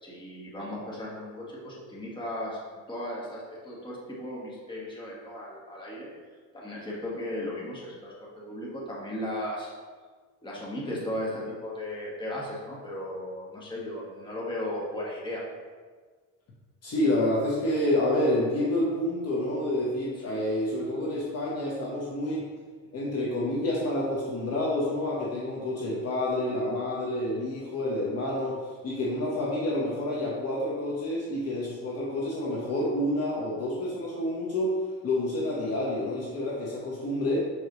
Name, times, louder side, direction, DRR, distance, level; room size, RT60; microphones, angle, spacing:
voice 1, 0.0-2.6 2.9-6.1 6.5-9.7 10.4-15.5 20.2-20.4, left 1 dB, 15° left, -5 dB, 1.6 m, -36 dB
voice 2, 16.8-22.4 22.9-34.8 35.0-37.5, left 1 dB, 45° left, -4 dB, 1.2 m, -28 dB
6.1 x 5.0 x 3.1 m, 1.5 s
cardioid pair, 130°, 35 cm